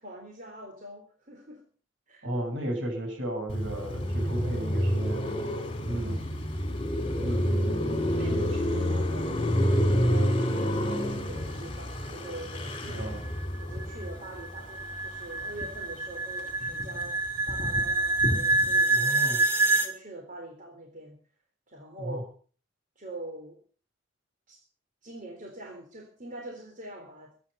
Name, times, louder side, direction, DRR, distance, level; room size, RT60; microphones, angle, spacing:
voice 1, 0.0-1.7 2.1-2.3 5.9-6.6 8.0-13.2 13.6-17.2 17.5-19.0 19.8-21.2 21.7-22.2 23.0-23.6 24.5-24.6 25.0-27.5, right 2 dB, 45° right, 2 dB, 3.9 m, -44 dB
voice 2, 2.2-5.3 5.8-6.2 7.2-8.8 12.8-13.2 18.8-19.4 22.0-22.2, right 1 dB, 70° right, 4 dB, 7.0 m, -34 dB
Car passing by, 3.5-16.0 16.3-18.8, equal, 30° left, 3.5 m, -29 dB
sound 1, 12.7-19.9, right 3 dB, 15° right, 2.5 m, -27 dB
22.5 x 9.8 x 5.6 m, 0.43 s
head